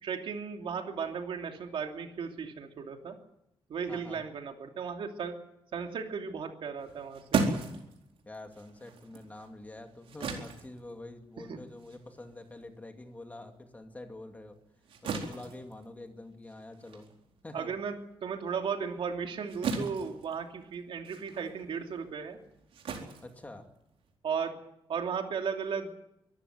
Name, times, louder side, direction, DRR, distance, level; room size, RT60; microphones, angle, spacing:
voice 1, 0.0-3.2 3.7-5.4 5.7-7.4 11.5-11.6 17.5-22.4 24.2-24.6 24.9-26.0, right 6 dB, 70° right, 4 dB, 2.9 m, -35 dB
voice 2, 3.9-4.2 8.2-14.6 15.0-17.1 17.4-17.7 23.2-23.7, left 2 dB, 15° left, 5 dB, 2.4 m, -46 dB
sound 1, 6.8-13.6 13.9-24.2, right 4 dB, 90° right, 4.2 m, -38 dB
24.0 x 14.5 x 9.5 m, 0.80 s
wide cardioid pair, 155°, 9 cm